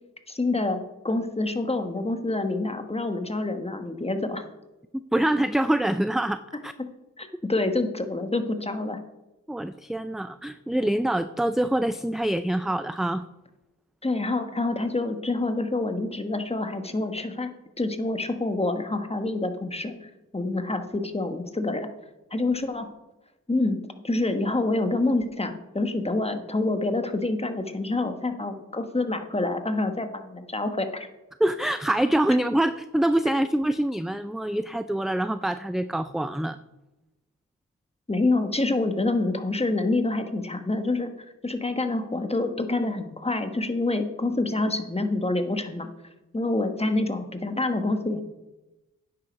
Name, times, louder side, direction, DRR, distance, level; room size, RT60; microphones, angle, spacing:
voice 1, 0.3-4.5 6.8-6.9 7.2-9.0 14.0-21.9 22.3-22.9 23.5-23.8 24.0-31.1 38.1-41.1 41.4-45.9 46.3-48.2, left 2 dB, 20° left, 7 dB, 1.2 m, -27 dB
voice 2, 5.1-6.7 9.5-13.2 31.4-36.6, right 1 dB, ahead, 11 dB, 0.3 m, -25 dB
9.7 x 7.8 x 5.1 m, 1.0 s
cardioid pair, 60°, 33 cm